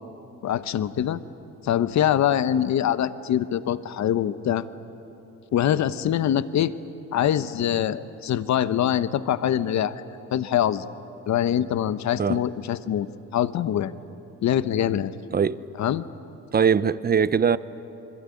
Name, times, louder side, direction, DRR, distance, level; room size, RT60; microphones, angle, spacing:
voice 1, 0.4-1.2 1.6-4.7 5.5-6.7 7.1-10.0 10.3-10.9 11.3-13.1 13.3-14.0 14.4-15.1 15.8-16.0, left 10 dB, 65° left, 1.0 m, -24 dB
voice 2, 16.5-17.6, right 7 dB, 30° right, 0.8 m, -21 dB
27.5 x 21.5 x 9.8 m
cardioid pair, 90°, 30 cm